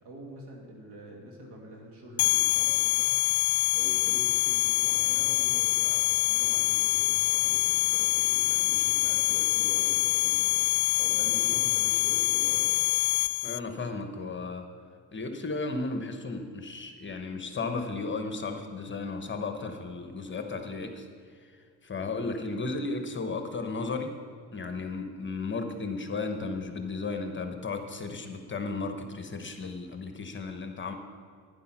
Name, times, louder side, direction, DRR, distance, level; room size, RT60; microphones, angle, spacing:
voice 1, 0.0-3.1 3.7-12.8, right 1 dB, 70° right, 0 dB, 2.8 m, -45 dB
sound 1, 2.2-13.6, left 21 dB, 70° left, 0.5 m, -25 dB
voice 2, 13.4-14.7 15.1-21.1 21.8-24.2 24.5-30.9, left 3 dB, 25° left, 6 dB, 1.2 m, -34 dB
11.5 x 9.8 x 6.0 m, 2.1 s
cardioid pair, 95°, 41 cm